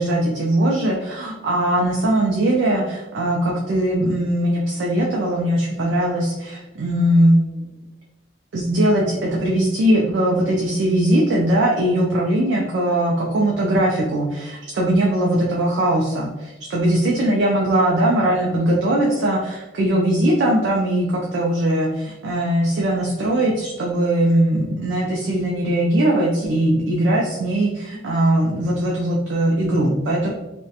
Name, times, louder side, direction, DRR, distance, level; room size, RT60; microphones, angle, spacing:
voice 1, 0.0-7.6 8.5-30.3, right 1 dB, 60° right, -2 dB, 0.3 m, -20 dB
2.3 x 2.1 x 2.7 m, 1.1 s
head